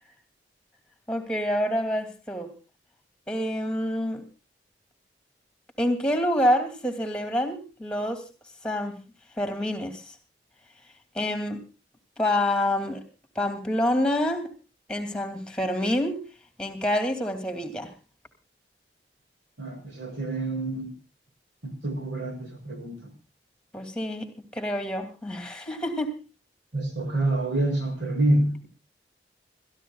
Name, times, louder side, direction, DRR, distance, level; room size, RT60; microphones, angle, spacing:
voice 1, 1.1-2.5 3.3-4.2 5.8-8.2 8.6-9.0 9.4-10.0 11.1-11.6 12.2-13.0 13.4-14.5 14.9-16.2 16.6-17.9 23.7-26.2, left 1 dB, 5° left, 7 dB, 2.5 m, -27 dB
voice 2, 19.6-20.9 21.6-23.1 26.7-28.7, right 1 dB, 90° right, 4 dB, 6.5 m, -27 dB
29.0 x 14.0 x 2.3 m, 0.32 s
head